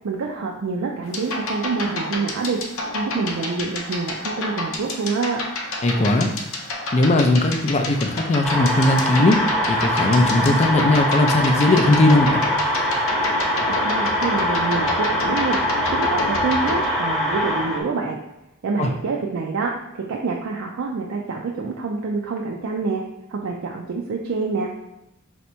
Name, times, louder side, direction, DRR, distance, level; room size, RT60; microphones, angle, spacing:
voice 1, 0.0-2.6 2.9-5.4 13.7-15.6 15.9-18.2 18.6-23.0 23.3-24.7, right 4 dB, 75° right, 0 dB, 0.4 m, -26 dB
sound 1, 1.0-16.9, left 2 dB, 75° left, 0.6 m, -30 dB
voice 2, 5.8-6.3 6.9-9.4 9.7-12.4 18.8-18.9, left 2 dB, 30° left, 4 dB, 0.4 m, -18 dB
sound 2, 8.4-17.8, equal, ahead, 0.8 m, -23 dB
3.4 x 2.8 x 4.3 m, 0.88 s
head